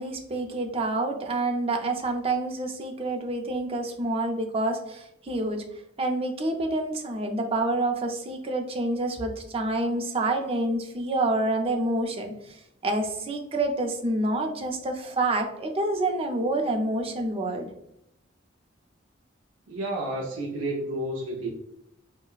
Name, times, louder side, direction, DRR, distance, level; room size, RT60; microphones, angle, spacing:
voice 1, 0.0-5.7 6.0-17.7, right 2 dB, 30° right, 4 dB, 0.4 m, -28 dB
voice 2, 19.7-21.5, right 1 dB, 85° right, -1 dB, 0.5 m, -31 dB
3.9 x 2.0 x 2.3 m, 0.80 s
head